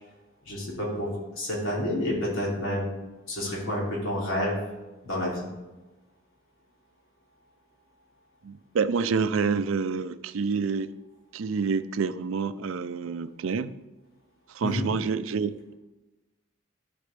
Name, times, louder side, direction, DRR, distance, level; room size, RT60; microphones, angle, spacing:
voice 1, 0.4-2.9 3.3-4.6 5.0-5.4 14.6-14.9, left 1 dB, 85° left, -4 dB, 2.9 m, -29 dB
voice 2, 8.4-10.9 11.3-13.7 14.5-15.7, right 5 dB, 85° right, 14 dB, 0.4 m, -28 dB
13.5 x 5.1 x 3.3 m, 1.1 s
head